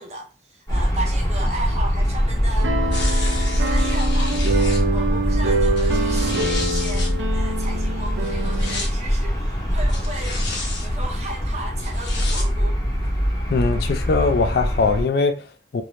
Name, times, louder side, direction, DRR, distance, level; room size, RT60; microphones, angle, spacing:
voice 1, 0.0-2.8 3.1-10.5 10.8-12.8, right 2 dB, 35° right, 0.6 m, -35 dB
sound 1, 0.7-15.0, equal, 20° left, 0.7 m, -23 dB
sound 2, 2.6-8.8, right 2 dB, 90° right, 0.5 m, -25 dB
sound 3, 2.9-4.8 5.6-7.1 8.2-8.9 9.9-10.9 11.8-12.5 13.1-13.2, left 3 dB, 80° left, 0.8 m, -32 dB
voice 2, 13.5-15.8, left 4 dB, 60° left, 0.3 m, -21 dB
2.6 x 2.0 x 3.1 m
head